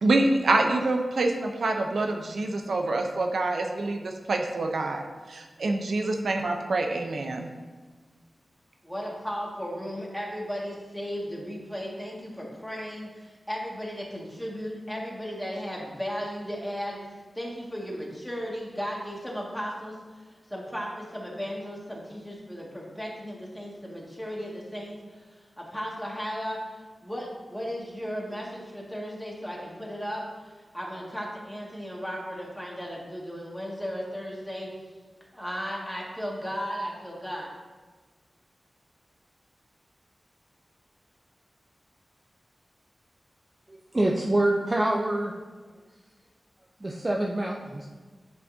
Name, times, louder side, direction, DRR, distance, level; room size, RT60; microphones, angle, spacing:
voice 1, 0.0-7.5, right 2 dB, 80° right, 3 dB, 0.7 m, -26 dB
voice 2, 8.8-34.7 35.3-37.5, equal, 5° left, -4 dB, 2.0 m, -35 dB
voice 3, 43.7-45.3 46.8-47.9, right 1 dB, 30° right, 0 dB, 0.6 m, -26 dB
10.5 x 5.3 x 2.8 m, 1.4 s
wide cardioid pair, 75°, 0 cm